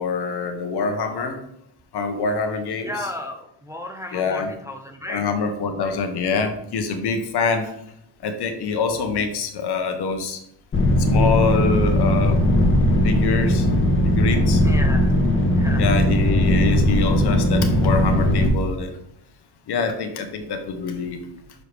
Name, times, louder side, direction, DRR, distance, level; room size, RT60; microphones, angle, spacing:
voice 1, 0.0-1.4 1.9-2.9 4.1-4.5 5.1-7.7 8.2-10.4 11.1-12.4 13.0-13.7 14.0-14.6 15.8-18.9 19.7-21.2, left 4 dB, 60° left, 6 dB, 1.1 m, -25 dB
voice 2, 2.8-5.2 14.6-15.1 15.4-15.9, left 1 dB, 5° right, 2 dB, 0.5 m, -34 dB
sound 1, 10.7-18.5, left 1 dB, 25° left, 1.1 m, -18 dB
6.6 x 4.7 x 3.4 m, 0.77 s
cardioid pair, 125°, 45 cm